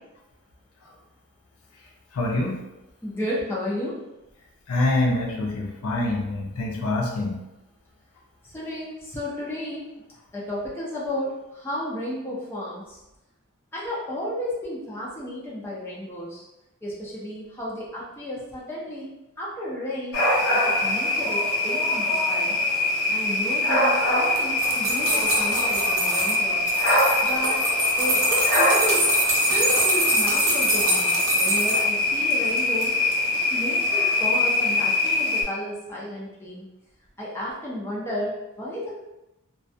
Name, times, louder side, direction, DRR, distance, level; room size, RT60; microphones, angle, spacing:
voice 1, 2.1-2.6 4.7-7.4, left 2 dB, 75° left, 0 dB, 0.5 m, -25 dB
voice 2, 3.0-4.0 8.5-9.8 10.3-13.0 13.7-16.5 16.8-19.1 19.4-20.2 20.5-22.6 23.1-26.6 27.2-27.6 28.0-29.0 29.5-32.9 33.5-36.7 37.2-39.0, left 1 dB, 10° left, -6 dB, 0.5 m, -32 dB
sound 1, 20.1-35.4, left 2 dB, 50° left, 0.8 m, -23 dB
sound 2, 24.2-26.4 26.7-31.9 32.3-32.9 33.1-33.2, right 1 dB, 60° right, 0.6 m, -26 dB
2.2 x 2.2 x 2.6 m, 0.95 s
head